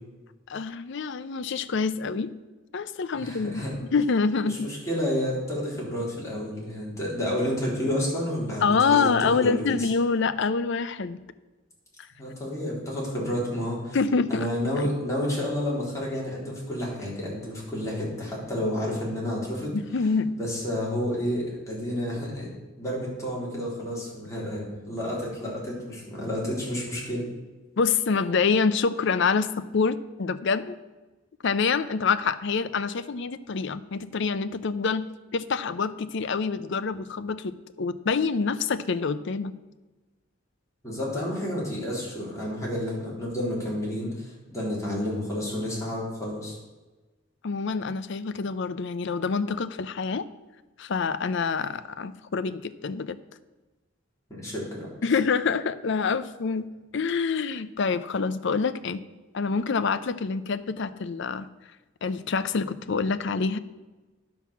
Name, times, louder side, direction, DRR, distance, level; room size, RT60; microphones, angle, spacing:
voice 1, 0.5-2.3 2.7-3.6 3.9-4.7 8.6-11.2 13.9-14.5 19.7-20.4 27.8-30.8 31.4-39.5 47.4-50.3 50.8-53.2 55.0-59.0 59.3-61.5 62.0-63.6, left 5 dB, 65° left, 13 dB, 0.5 m, -26 dB
voice 2, 3.2-3.7 4.5-9.9 12.2-14.0 14.3-19.8 20.4-22.5 22.8-27.3 40.8-46.6 54.3-54.9, left 1 dB, 15° left, -5 dB, 3.7 m, -30 dB
10.5 x 6.0 x 7.1 m, 1.2 s
head